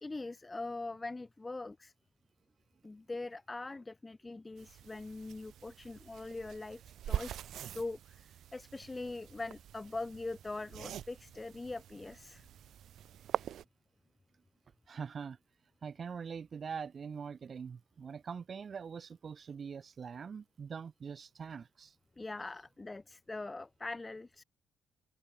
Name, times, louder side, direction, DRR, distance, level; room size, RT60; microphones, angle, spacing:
voice 1, 0.0-1.9 2.8-7.4 7.7-12.5 22.2-24.4, left 2 dB, 20° left, 0.8 m, -42 dB
sound 1, 4.6-13.6, right 11 dB, 70° right, 4.1 m, -43 dB
voice 2, 14.9-15.4 15.8-22.0, right 6 dB, 45° right, 3.5 m, -43 dB
open air
cardioid pair, 90°, 0 cm